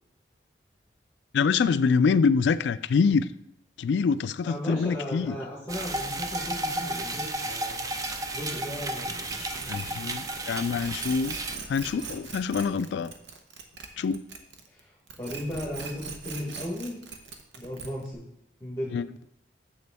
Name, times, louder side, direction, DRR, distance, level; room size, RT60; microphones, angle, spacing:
voice 1, 1.3-3.3 3.8-5.4 9.7-11.3 11.7-13.1 14.0-14.2 18.9-19.1, left 5 dB, 70° left, 15 dB, 0.3 m, -25 dB
voice 2, 4.4-7.8 8.3-10.1 14.7-17.0 17.5-18.3 18.6-19.0, left 1 dB, 15° left, -3 dB, 1.1 m, -36 dB
sound 1, 5.7-11.6, right 1 dB, 20° right, 0.4 m, -33 dB
sound 2, 9.3-14.8 15.1-18.1, right 5 dB, 75° right, 0.9 m, -41 dB
7.7 x 6.7 x 3.5 m, 0.82 s
head